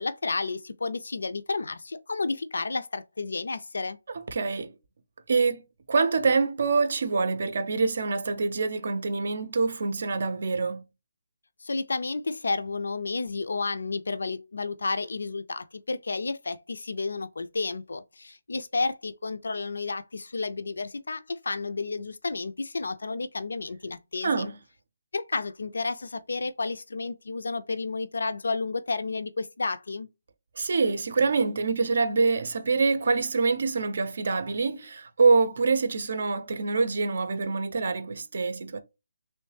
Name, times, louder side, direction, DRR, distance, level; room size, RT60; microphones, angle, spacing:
voice 1, 0.0-4.0 11.6-24.5 25.1-30.1, left 3 dB, 80° left, 0.3 m, -31 dB
voice 2, 4.3-4.8 5.3-5.6 5.9-10.8 24.2-24.6 30.6-38.8, right 4 dB, 55° right, 0.5 m, -25 dB
3.1 x 3.0 x 3.2 m
hypercardioid pair, 170°, 0 cm